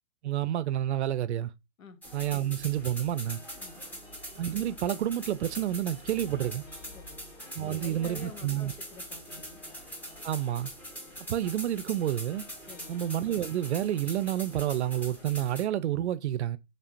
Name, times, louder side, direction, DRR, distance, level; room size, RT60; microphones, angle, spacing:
voice 1, 0.2-1.5 2.1-3.4 4.4-6.6 7.6-8.7 10.2-10.7 11.3-12.4 12.9-16.6, right 12 dB, 60° right, 0.5 m, -29 dB
sound 1, 2.0-15.6, equal, 5° left, 0.5 m, -43 dB
sound 2, 3.3-15.3, left 3 dB, 65° left, 1.9 m, -55 dB
voice 2, 3.6-4.0 6.9-7.2 7.6-9.7 12.7-13.0, left 5 dB, 90° left, 0.9 m, -48 dB
4.4 x 3.2 x 2.5 m
hypercardioid pair, 130°, 40 cm